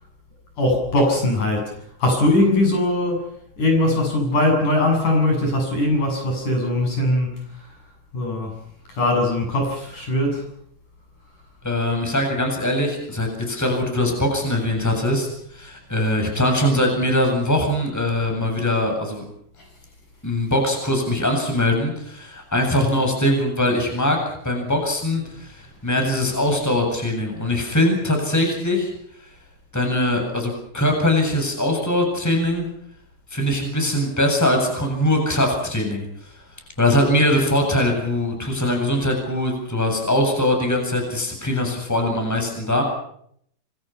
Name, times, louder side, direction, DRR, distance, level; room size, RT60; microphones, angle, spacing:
voice 1, 0.6-3.3 3.6-7.7 8.1-8.6 8.9-10.5, left 1 dB, 45° left, 9.1 m, -21 dB
voice 2, 11.6-19.2 20.2-24.2 24.4-28.9 29.7-32.6 33.3-36.3 36.8-42.8, left 1 dB, 5° left, 7.7 m, -22 dB
27.5 x 25.0 x 5.9 m
omnidirectional pair, 4.8 m